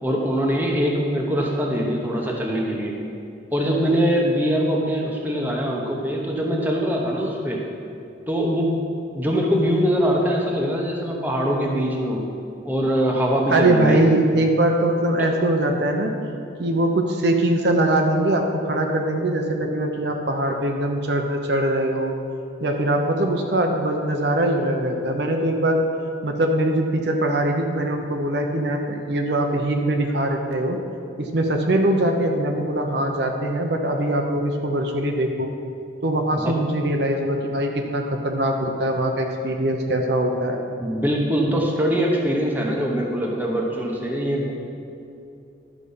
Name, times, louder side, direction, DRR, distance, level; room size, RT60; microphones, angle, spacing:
voice 1, 0.0-3.0 3.5-7.6 8.3-8.8 9.1-12.2 12.6-14.0 15.2-15.3 36.4-36.6 40.8-44.5, equal, 10° right, -1 dB, 1.0 m, -22 dB
voice 2, 13.5-16.2 16.6-22.1 22.6-25.8 26.2-30.8 31.2-35.5 36.0-40.6, right 1 dB, 60° right, 3 dB, 0.7 m, -22 dB
12.0 x 5.0 x 5.5 m, 2.7 s
head